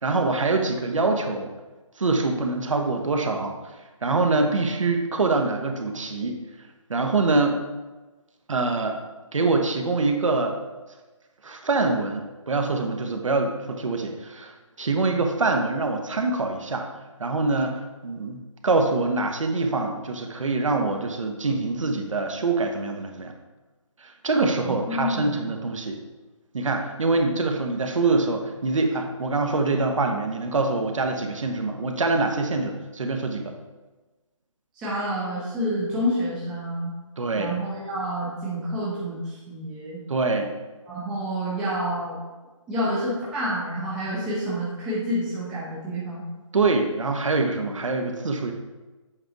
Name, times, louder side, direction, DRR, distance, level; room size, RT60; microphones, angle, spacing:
voice 1, 0.0-1.5 2.0-3.6 4.0-6.4 6.9-7.6 8.5-9.0 9.3-10.6 11.4-16.9 17.2-23.3 24.0-26.0 26.5-33.5 37.2-37.5 40.1-40.5 46.5-48.5, right 3 dB, 70° right, 4 dB, 1.1 m, -24 dB
voice 2, 24.6-25.4 34.8-36.9 37.4-40.0 40.9-42.2 42.7-46.2, equal, 5° right, -8 dB, 0.6 m, -28 dB
7.9 x 4.6 x 3.9 m, 1.2 s
hypercardioid pair, 170°, 17 cm